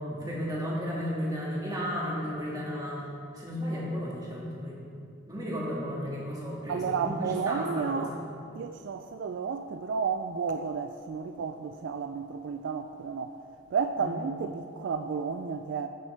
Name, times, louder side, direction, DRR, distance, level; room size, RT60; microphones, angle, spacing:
voice 1, 0.0-3.0 3.3-4.8 5.3-8.2 14.0-14.1, equal, 20° right, -6 dB, 1.9 m, -33 dB
voice 2, 6.7-8.1 8.5-13.3 13.7-15.9, right 5 dB, 65° right, 8 dB, 0.3 m, -32 dB
13.5 x 6.2 x 3.3 m, 2.5 s
head